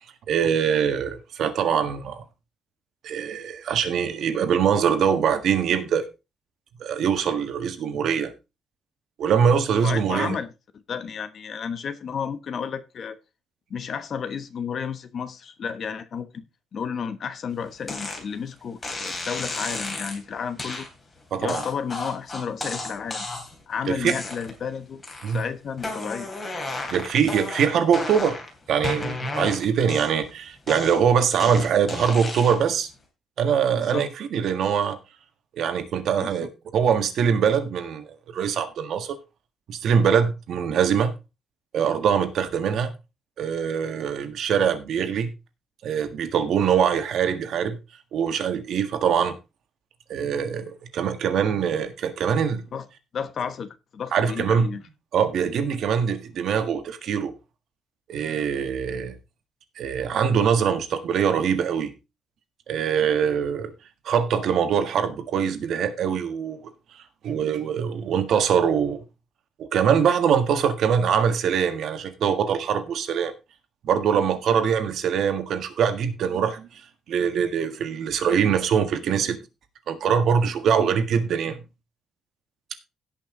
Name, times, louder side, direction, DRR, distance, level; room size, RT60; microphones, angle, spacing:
voice 1, 0.3-2.2 3.0-6.1 6.8-8.3 9.2-10.4 21.3-21.6 23.9-24.1 25.2-25.4 26.9-28.4 28.7-32.9 33.4-35.0 35.6-39.2 39.7-41.2 41.7-42.9 43.4-45.3 45.8-47.8 48.1-49.4 50.1-52.6 54.1-54.7 55.1-57.3 58.1-59.1 59.8-61.9 62.7-63.7 64.0-66.7 67.2-69.0 69.6-73.3 73.8-76.7 77.1-79.4 79.9-81.6, right 7 dB, 55° right, 1.6 m, -23 dB
voice 2, 9.8-10.5 10.9-13.2 13.7-16.4 16.7-20.9 21.4-23.3 23.7-26.3 33.7-34.1 36.2-36.5 52.7-52.9 53.1-54.8, left 6 dB, 40° left, 1.1 m, -32 dB
sound 1, 17.9-18.2 18.8-20.2 20.6-20.9 21.5-23.6 24.0-24.6 25.0-25.5 25.8-28.5 28.8-30.3 30.7-32.7, left 2 dB, 20° left, 3.1 m, -33 dB
17.0 x 5.8 x 3.8 m
cardioid pair, 175°, 0 cm